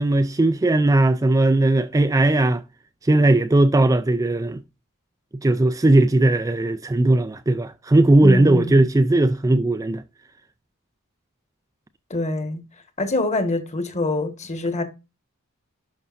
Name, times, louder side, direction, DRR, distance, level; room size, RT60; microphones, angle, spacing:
voice 1, 0.0-2.6 3.0-4.6 5.4-10.0, right 2 dB, 15° right, 0.4 m, -18 dB
voice 2, 8.2-8.8 12.1-12.6 13.0-14.8, left 2 dB, 30° left, 1.5 m, -25 dB
11.0 x 5.3 x 2.5 m
head